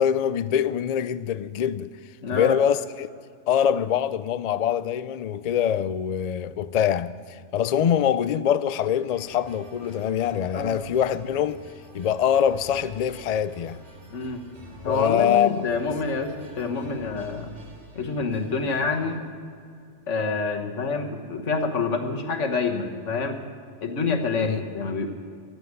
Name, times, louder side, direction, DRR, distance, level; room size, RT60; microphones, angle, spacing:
voice 1, 0.0-1.9 2.3-3.1 3.5-11.6 11.9-13.8 14.9-15.6 24.4-24.6, left 9 dB, 65° left, 0.4 m, -24 dB
voice 2, 2.2-2.6 10.5-10.8 14.1-14.4 14.8-17.5 17.9-19.2 20.1-23.4 23.8-25.1, left 4 dB, 90° left, 1.6 m, -27 dB
sound 1, 8.9-19.2, right 1 dB, 75° right, 2.5 m, -47 dB
14.0 x 8.0 x 9.6 m
omnidirectional pair, 1.2 m